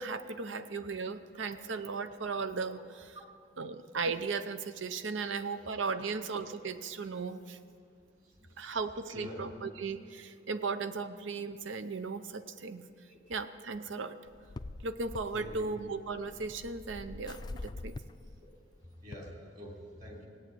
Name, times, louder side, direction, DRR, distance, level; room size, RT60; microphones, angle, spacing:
voice 1, 0.0-3.2 3.6-7.6 8.6-12.8 13.3-14.2 14.8-17.9, right 4 dB, 90° right, 11 dB, 0.7 m, -36 dB
voice 2, 9.1-9.5 13.1-13.2 15.3-15.7 19.0-20.3, left 1 dB, 40° right, -1 dB, 3.1 m, -46 dB
sound 1, 14.3-19.1, left 2 dB, 20° left, 0.3 m, -45 dB
16.5 x 9.2 x 8.4 m, 2.5 s
head